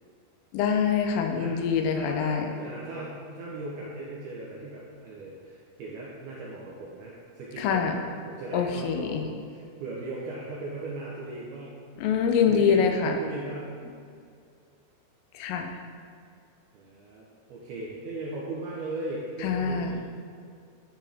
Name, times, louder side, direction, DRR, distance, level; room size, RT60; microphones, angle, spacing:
voice 1, 0.5-2.5 7.6-8.0 8.5-9.3 12.0-13.2 15.3-15.7 19.4-20.0, left 6 dB, 85° left, 4 dB, 3.4 m, -25 dB
voice 2, 1.4-11.8 12.4-13.7 16.7-20.0, right 2 dB, 75° right, -5 dB, 2.4 m, -38 dB
11.5 x 8.1 x 3.6 m, 2.3 s
omnidirectional pair, 5.8 m